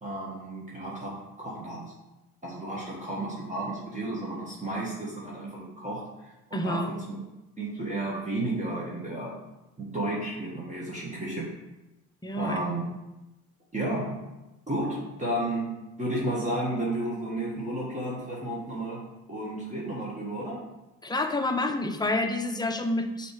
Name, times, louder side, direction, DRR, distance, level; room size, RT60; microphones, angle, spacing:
voice 1, 0.0-1.9 2.4-7.2 7.6-9.3 9.8-11.5 12.4-12.8 13.7-14.3 14.7-15.7 16.0-19.0 19.3-20.6, right 1 dB, 20° right, -5 dB, 1.7 m, -32 dB
voice 2, 6.5-6.9 12.2-12.6 21.0-23.3, left 2 dB, 10° left, 5 dB, 0.8 m, -28 dB
6.0 x 3.3 x 4.9 m, 0.98 s
supercardioid pair, 60°, 37 cm